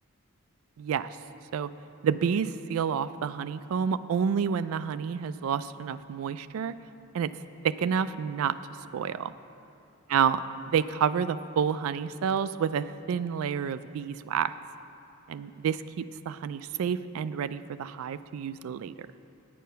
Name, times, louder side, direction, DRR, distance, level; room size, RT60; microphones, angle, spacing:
voice 1, 0.8-1.1 1.5-1.7 2.0-6.7 7.1-7.3 7.6-8.6 8.9-9.3 10.1-10.4 10.7-14.5 15.3-18.9, right 7 dB, 80° right, 13 dB, 0.3 m, -29 dB
9.2 x 8.5 x 5.6 m, 2.7 s
head